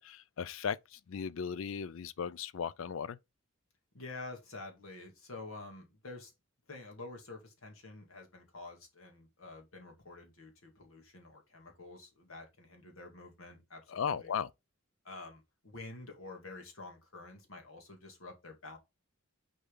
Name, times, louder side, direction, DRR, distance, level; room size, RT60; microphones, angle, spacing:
voice 1, 0.0-3.2 13.9-14.5, left 7 dB, 70° left, 0.4 m, -37 dB
voice 2, 3.9-6.3 6.7-14.3 15.0-18.8, left 2 dB, 85° left, 2.1 m, -48 dB
6.7 x 4.3 x 3.8 m
head